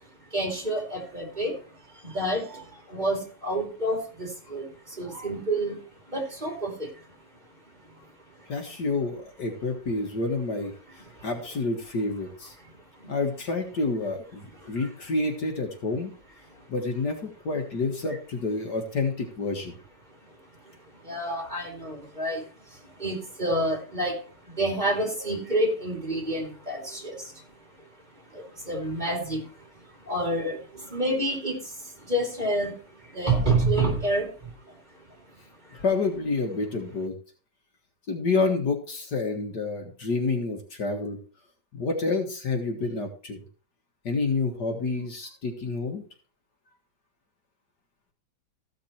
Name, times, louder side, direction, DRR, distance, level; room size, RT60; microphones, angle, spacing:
voice 1, 0.3-1.5 2.0-2.4 2.9-4.7 5.0-5.8 6.1-6.7 21.1-22.4 23.0-24.2 24.6-27.0 28.7-29.4 30.1-30.6 30.9-31.6 32.1-32.7 33.1-34.3, right 1 dB, 20° right, 1 dB, 2.7 m, -27 dB
voice 2, 8.5-10.7 11.2-12.5 13.1-16.1 16.7-19.7 35.7-37.1 38.1-41.2 41.7-43.4 44.0-46.0, left 3 dB, 55° left, 3 dB, 2.1 m, -28 dB
14.5 x 6.5 x 4.4 m, 0.39 s
omnidirectional pair, 2.2 m